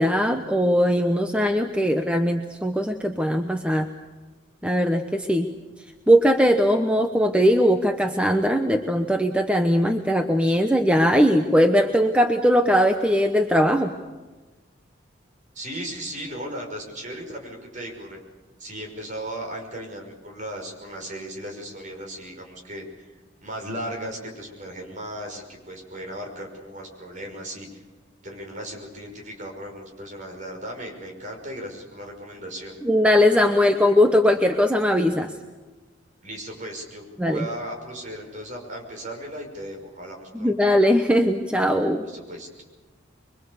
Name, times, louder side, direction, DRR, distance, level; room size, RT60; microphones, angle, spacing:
voice 1, 0.0-3.9 4.6-5.5 6.1-13.9 32.8-35.3 37.2-37.5 40.3-42.0, equal, 5° right, 5 dB, 0.9 m, -20 dB
voice 2, 15.5-18.2 18.6-23.1 23.4-27.8 28.2-32.7 36.2-40.5 42.0-42.6, right 1 dB, 40° right, 2 dB, 5.7 m, -36 dB
25.5 x 23.5 x 7.1 m, 1.2 s
head